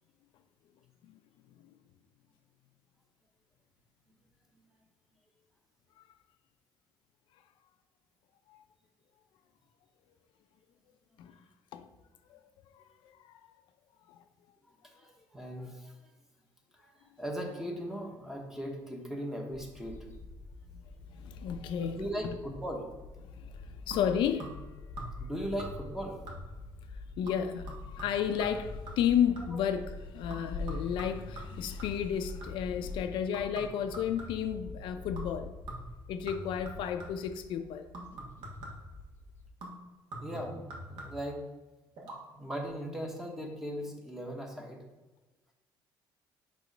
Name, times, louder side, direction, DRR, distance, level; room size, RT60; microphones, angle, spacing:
voice 1, 12.7-13.4 14.1-14.2 21.1-22.4 23.3-24.6 26.9-35.5 36.1-37.9, left 8 dB, 70° left, 0.4 m, -32 dB
voice 2, 14.8-15.9 16.8-16.9 17.2-20.0 21.8-22.8 25.2-26.2 40.2-41.4 42.3-44.8, equal, 5° right, 0.9 m, -38 dB
sound 1, 19.5-39.5, left 3 dB, 25° left, 0.7 m, -45 dB
sound 2, 23.9-24.7 25.0-25.3 25.6-26.0 26.3-26.7 27.3-29.7 30.3-32.8 33.3-34.6 35.2-35.4 35.7-37.3 37.9-39.0 39.6-41.4 42.0-42.2 42.5-42.6, right 1 dB, 60° right, 1.6 m, -45 dB
6.9 x 3.1 x 5.1 m
cardioid pair, 160°, 9 cm